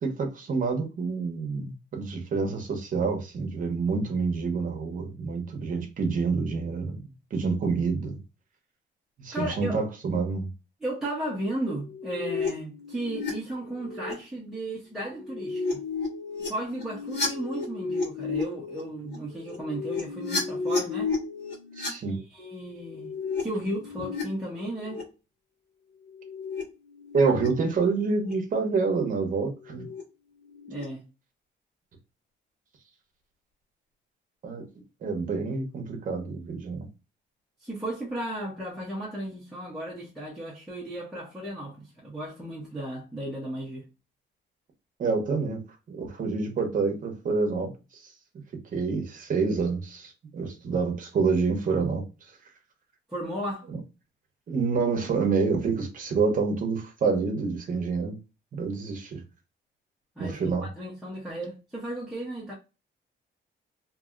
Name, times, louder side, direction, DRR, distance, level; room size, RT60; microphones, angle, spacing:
voice 1, 0.0-8.2 9.2-10.5 21.8-22.2 27.1-29.9 34.4-34.6 35.0-36.9 45.0-45.6 45.9-47.7 48.7-52.0 54.5-58.2 58.5-59.2 60.2-60.7, right 4 dB, 40° right, 0.9 m, -27 dB
voice 2, 9.3-9.7 10.8-15.6 16.5-21.1 22.0-23.1 23.4-25.0 30.7-31.0 37.6-43.8 53.1-53.6 60.2-62.5, right 1 dB, ahead, 0.9 m, -35 dB
sound 1, 11.8-13.3 13.6-14.1 15.1-21.9 22.7-24.2 24.6-25.0 26.1-26.6 26.9-27.5 28.1-28.3 29.7-30.0 30.4-30.8, left 4 dB, 60° left, 1.5 m, -33 dB
2.7 x 2.7 x 2.4 m
cardioid pair, 160°, 20 cm